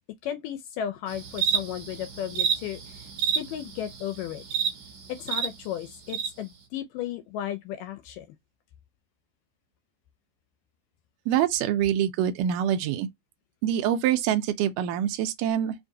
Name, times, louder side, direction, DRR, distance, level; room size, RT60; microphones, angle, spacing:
voice 1, 0.2-3.1 3.3-4.4 5.1-8.3, left 10 dB, 80° left, 1.9 m, -34 dB
sound 1, 1.1-5.5 6.1-6.3, right 7 dB, 60° right, 1.8 m, -29 dB
voice 2, 11.3-13.1 13.6-15.7, right 10 dB, 90° right, 1.8 m, -25 dB
5.6 x 2.6 x 2.6 m
omnidirectional pair, 4.3 m